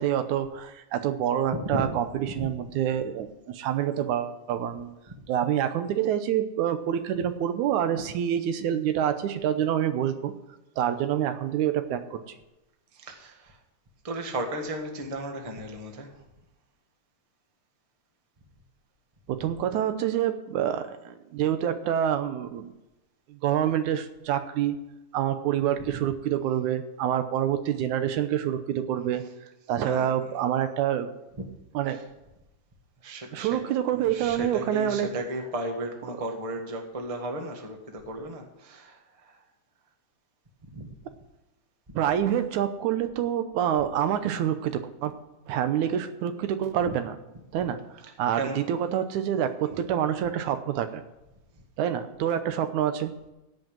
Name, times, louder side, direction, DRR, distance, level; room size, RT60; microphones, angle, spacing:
voice 1, 0.0-5.0 5.3-10.3 10.8-12.4 19.3-22.7 23.3-24.8 25.1-29.3 29.7-31.1 31.7-32.0 33.3-35.1 36.1-36.2 41.9-45.1 45.5-47.2 47.5-47.8 48.2-51.0 51.8-53.1, right 10 dB, 90° right, 10 dB, 2.3 m, -27 dB
voice 2, 12.9-13.6 14.0-16.1 19.4-19.5 25.9-26.0 29.1-29.2 29.8-30.1 31.3-31.4 31.8-32.0 33.0-33.6 34.1-39.4 40.7-40.9 46.8-46.9 48.0-48.7 49.6-49.8, right 1 dB, 20° right, 3 dB, 0.9 m, -35 dB
16.0 x 5.4 x 9.1 m, 0.97 s
omnidirectional pair, 3.4 m